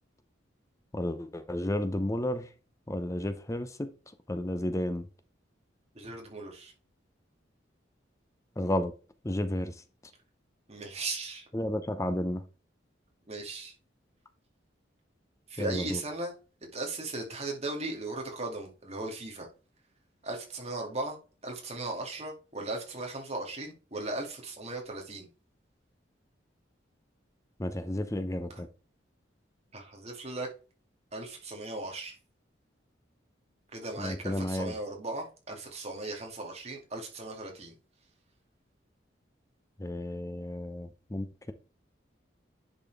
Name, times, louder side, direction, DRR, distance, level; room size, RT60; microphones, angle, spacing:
voice 1, 0.9-2.5 2.9-3.9 4.3-5.1 8.6-8.9 9.2-9.8 11.5-12.4 15.6-16.0 27.6-28.7 34.0-34.7 39.8-41.5, left 1 dB, 15° left, 0.6 m, -32 dB
voice 2, 5.9-6.7 10.7-11.4 13.3-13.7 15.5-19.5 20.2-25.3 29.7-30.5 31.1-32.2 33.7-37.7, right 2 dB, 35° right, 2.2 m, -37 dB
10.0 x 4.2 x 3.4 m
head